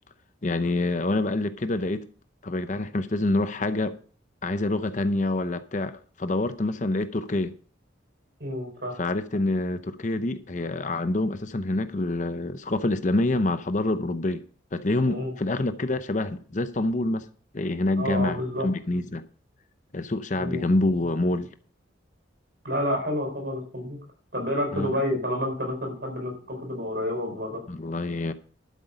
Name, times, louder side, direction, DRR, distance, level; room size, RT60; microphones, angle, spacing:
voice 1, 0.4-2.0 2.4-4.0 4.4-7.5 9.0-14.4 14.7-17.2 17.5-19.2 19.9-21.5 24.7-25.0 27.7-28.3, left 2 dB, 40° left, 0.7 m, -26 dB
voice 2, 8.4-8.9 15.1-15.3 18.0-18.7 20.4-20.6 22.6-24.0 24.3-27.6, left 1 dB, 60° right, 4.2 m, -29 dB
12.0 x 8.2 x 5.0 m
head